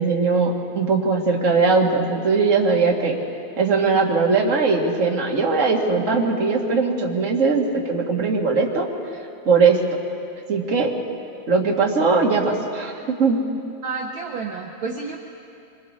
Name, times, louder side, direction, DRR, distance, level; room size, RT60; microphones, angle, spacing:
voice 1, 0.0-3.1 3.6-8.9 9.4-9.8 10.5-10.9 11.5-13.4, right 4 dB, 30° right, -1 dB, 1.6 m, -20 dB
voice 2, 13.8-15.2, right 4 dB, 65° right, 1 dB, 1.2 m, -30 dB
25.5 x 24.0 x 4.2 m, 2.7 s
omnidirectional pair, 3.4 m